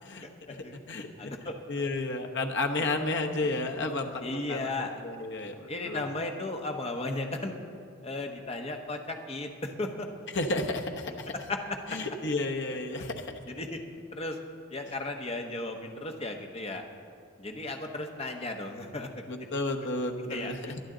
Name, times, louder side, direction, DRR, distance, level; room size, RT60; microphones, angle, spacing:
voice 1, 0.2-1.5 2.8-2.9 3.4-3.5 4.2-5.0 5.7-7.5 8.0-10.1 11.5-11.8 13.5-13.8 14.1-14.4 14.7-16.8 17.4-19.1 20.3-20.8, left 2 dB, 30° left, 3 dB, 1.0 m, -35 dB
voice 2, 0.9-1.3 1.7-4.7 5.0-6.0 10.3-11.3 11.9-13.3 19.3-20.8, left 2 dB, 55° left, 3 dB, 1.0 m, -32 dB
21.5 x 10.5 x 3.9 m, 2.4 s
head